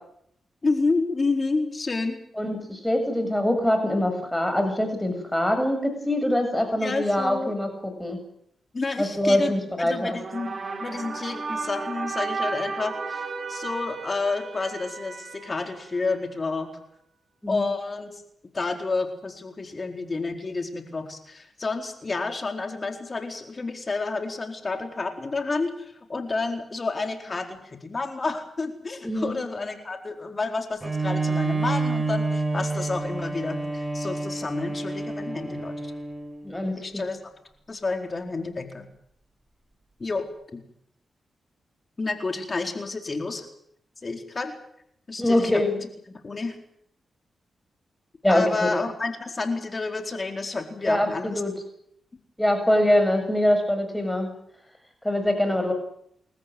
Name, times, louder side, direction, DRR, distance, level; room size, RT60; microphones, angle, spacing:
voice 1, 0.6-2.2 6.8-7.5 8.7-16.7 17.5-18.2 18.5-35.9 36.8-37.2 37.7-38.9 40.0-40.3 40.5-40.6 42.0-43.5 44.0-44.5 45.1-45.8 46.1-46.5 48.3-51.4, left 3 dB, 40° left, 5 dB, 4.4 m, -30 dB
voice 2, 2.4-7.7 8.0-8.2 9.0-10.2 17.4-17.7 29.0-29.4 36.4-37.0 45.2-45.7 48.2-48.7 50.8-51.5 52.4-54.3 55.0-55.7, left 1 dB, 5° left, 6 dB, 7.3 m, -23 dB
sound 1, 10.0-16.4, right 4 dB, 50° right, 4.2 m, -34 dB
Bowed string instrument, 30.8-36.5, right 3 dB, 20° right, 5.2 m, -28 dB
29.0 x 14.0 x 9.4 m, 0.71 s
supercardioid pair, 50°, 0 cm